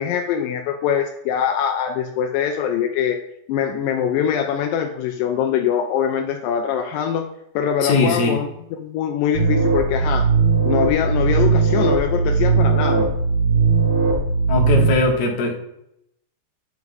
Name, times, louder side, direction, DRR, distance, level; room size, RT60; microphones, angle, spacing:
voice 1, 0.0-3.2 3.5-7.3 7.6-10.3 10.7-13.1, left 8 dB, 80° left, 4 dB, 2.2 m, -23 dB
voice 2, 7.8-8.4 14.5-15.6, left 3 dB, 60° left, 0 dB, 2.3 m, -20 dB
sound 1, 9.3-14.9, right 4 dB, 45° right, 1.4 m, -18 dB
9.3 x 3.2 x 5.2 m, 0.78 s
omnidirectional pair, 4.0 m